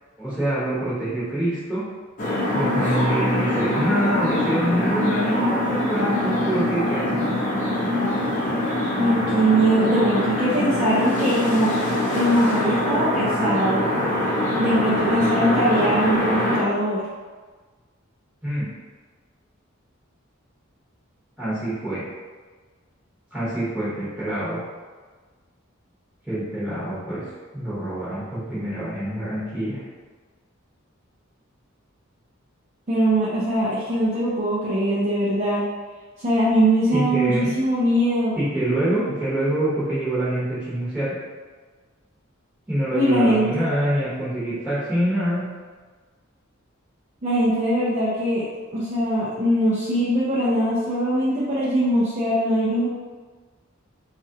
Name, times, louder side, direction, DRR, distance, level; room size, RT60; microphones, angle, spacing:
voice 1, 0.2-1.9 2.5-7.2 18.4-18.7 21.4-22.0 23.3-24.6 26.2-27.3 27.5-29.8 36.9-37.5 38.4-41.1 42.7-45.5, right 1 dB, 5° right, -11 dB, 1.0 m, -25 dB
sound 1, 2.2-16.6, left 1 dB, 40° left, 0.8 m, -23 dB
voice 2, 9.0-11.7 12.1-13.8 14.6-17.0 32.9-35.6 36.2-38.4 42.9-43.6 47.2-48.5 48.7-52.9, right 1 dB, 35° right, -9 dB, 0.6 m, -21 dB
4.4 x 2.4 x 2.8 m, 1.4 s
head